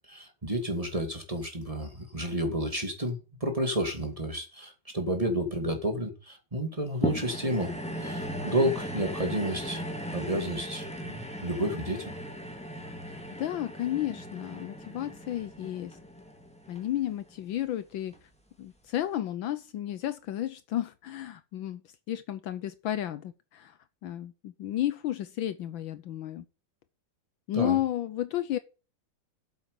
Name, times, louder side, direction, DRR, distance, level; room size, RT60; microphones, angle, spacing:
voice 1, 0.1-9.8 10.1-12.1 27.5-27.8, right 1 dB, 15° right, 2.2 m, -31 dB
sound 1, 7.0-17.5 18.1-18.2, equal, 5° left, 1.7 m, -37 dB
voice 2, 13.1-16.0 16.7-18.2 18.6-21.8 22.1-26.4 27.5-28.6, left 12 dB, 70° left, 1.4 m, -32 dB
8.3 x 8.0 x 6.8 m
omnidirectional pair, 2.3 m